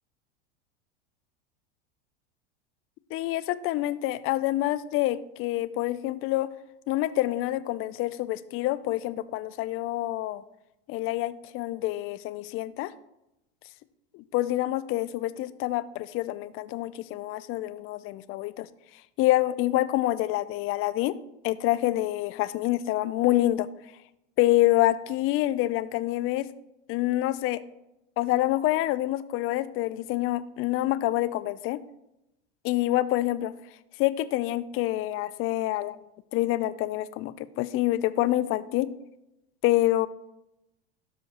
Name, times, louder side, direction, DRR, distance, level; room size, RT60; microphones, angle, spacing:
voice 1, 3.1-6.5 6.9-10.4 10.9-12.9 14.1-18.7 19.2-21.2 21.4-23.7 24.4-26.5 26.9-27.6 28.2-31.8 32.6-33.5 34.0-36.0 36.3-38.9 39.6-40.1, left 16 dB, 40° left, 16 dB, 0.5 m, -27 dB
12.5 x 5.1 x 2.9 m, 0.88 s
hypercardioid pair, 105°, 35 cm